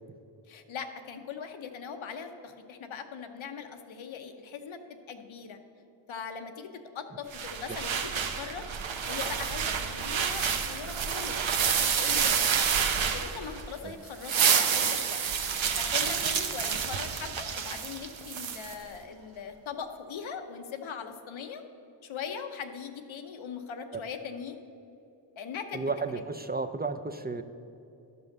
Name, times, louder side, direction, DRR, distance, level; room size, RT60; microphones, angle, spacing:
voice 1, 0.5-4.8 5.1-5.6 6.1-8.6 9.1-12.7 13.1-15.2 15.5-21.6 22.0-24.6 25.4-25.9, left 6 dB, 85° left, 6 dB, 0.9 m, -40 dB
sound 1, 7.3-13.7 14.1-18.7, right 7 dB, 80° right, 0.8 m, -29 dB
voice 2, 25.7-27.4, right 3 dB, 20° right, 9 dB, 0.4 m, -33 dB
12.0 x 5.5 x 6.6 m, 2.7 s
cardioid pair, 80°, 46 cm